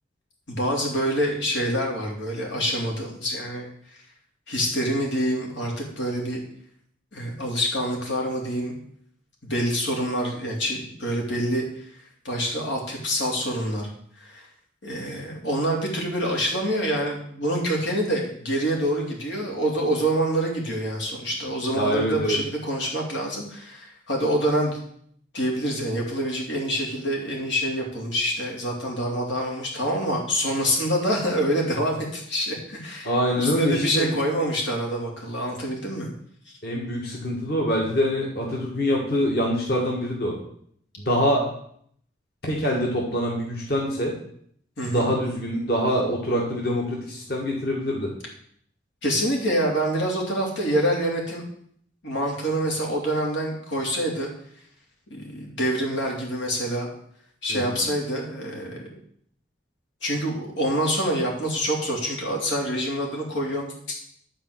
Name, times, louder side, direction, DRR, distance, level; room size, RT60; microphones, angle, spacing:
voice 1, 0.5-3.7 4.5-6.4 7.1-8.8 9.5-11.8 12.2-13.9 14.2-14.5 14.8-24.8 25.3-36.1 36.5-36.6 44.8-45.1 49.0-51.4 52.0-54.3 55.1-56.9 57.4-58.9 60.0-64.0, equal, 90° left, 0 dB, 3.2 m, -26 dB
voice 2, 21.7-22.4 33.0-34.1 36.6-40.3 41.0-41.4 42.4-44.1 44.9-48.1 57.5-57.8, equal, 55° left, -2 dB, 2.2 m, -25 dB
11.5 x 4.5 x 8.0 m, 0.65 s
head